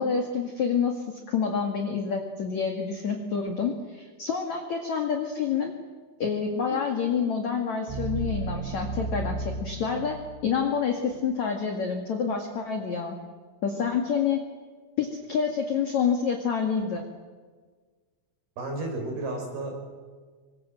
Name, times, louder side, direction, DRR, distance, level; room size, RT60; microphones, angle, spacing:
voice 1, 0.0-5.7 6.2-13.2 13.6-14.4 15.0-17.0, left 6 dB, 50° left, 3 dB, 2.6 m, -28 dB
sound 1, 6.7-10.8, right 3 dB, 85° right, 6.1 m, -34 dB
voice 2, 18.6-19.8, right 2 dB, 55° right, 3 dB, 7.3 m, -32 dB
27.0 x 24.0 x 7.8 m, 1.5 s
omnidirectional pair, 5.5 m